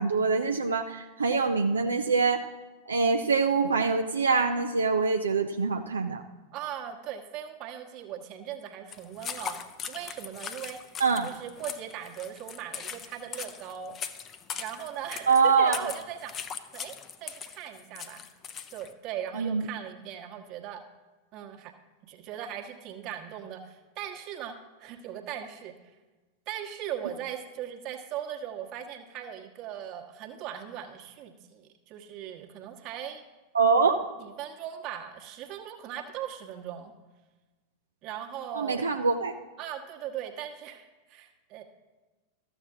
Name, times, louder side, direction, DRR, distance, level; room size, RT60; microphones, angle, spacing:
voice 1, 0.0-2.4 2.9-6.2 11.0-11.3 15.3-15.8 19.4-19.6 33.5-34.1 38.5-39.3, right 4 dB, 75° right, 4 dB, 0.5 m, -24 dB
voice 2, 6.5-14.0 14.6-16.3 16.7-18.2 18.7-20.8 21.3-21.7 22.0-26.0 26.5-33.2 34.2-36.9 38.0-38.8 39.6-41.6, right 10 dB, 40° right, 3 dB, 1.3 m, -39 dB
sound 1, 8.9-18.9, left 7 dB, 30° left, 0.6 m, -40 dB
13.5 x 7.3 x 3.7 m, 1.2 s
figure-of-eight pair, 90°, 0 cm